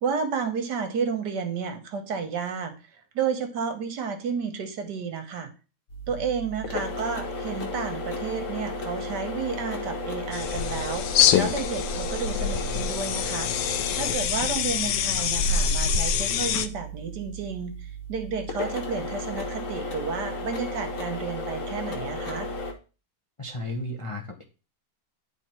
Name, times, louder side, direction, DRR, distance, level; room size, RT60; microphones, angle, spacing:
voice 1, 0.0-2.7 3.1-5.5 6.1-13.5 13.9-17.7 18.1-22.5, right 6 dB, 75° right, 7 dB, 1.7 m, -31 dB
sound 1, 5.9-22.7, left 1 dB, 50° left, 1.5 m, -34 dB
sound 2, 10.3-16.7, left 7 dB, 85° left, 1.3 m, -25 dB
voice 2, 23.4-24.4, left 1 dB, 30° left, 1 dB, 0.6 m, -34 dB
9.9 x 3.4 x 4.4 m, 0.33 s
omnidirectional pair, 1.8 m